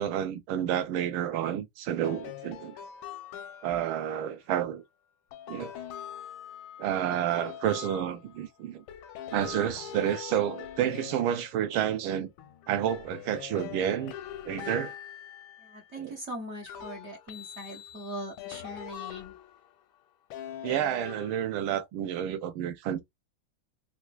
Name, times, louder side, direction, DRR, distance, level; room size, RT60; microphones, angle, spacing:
voice 1, 0.0-2.8 3.6-4.8 5.5-5.7 6.8-8.8 9.3-12.3 12.7-14.1 14.5-14.9 16.0-16.1 20.6-23.0, right 10 dB, 80° right, 1.5 m, -30 dB
sound 1, 2.0-4.0 5.3-8.5 8.9-11.9 12.4-15.9 16.6-19.7 20.3-21.8, left 10 dB, 85° left, 1.4 m, -43 dB
voice 2, 15.6-19.4, equal, 55° right, 0.8 m, -41 dB
4.3 x 2.2 x 2.4 m
omnidirectional pair, 2.2 m